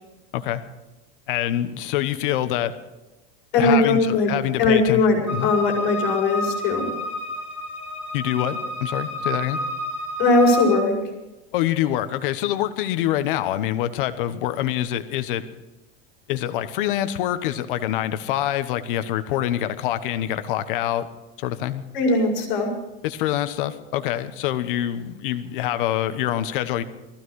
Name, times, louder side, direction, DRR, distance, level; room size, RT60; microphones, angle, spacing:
voice 1, 1.3-2.7 3.5-5.0 5.3-5.5 8.1-9.6 11.5-15.4 16.3-21.1 21.4-21.8 23.0-26.8, left 12 dB, 60° left, 11 dB, 1.2 m, -25 dB
voice 2, 3.5-4.3 4.6-6.8 10.2-10.9 21.9-22.7, left 3 dB, 35° left, 0 dB, 5.1 m, -19 dB
sound 1, 5.3-10.8, left 1 dB, 5° right, 4.4 m, -30 dB
18.5 x 15.0 x 4.8 m, 1.0 s
supercardioid pair, 175°, 30 cm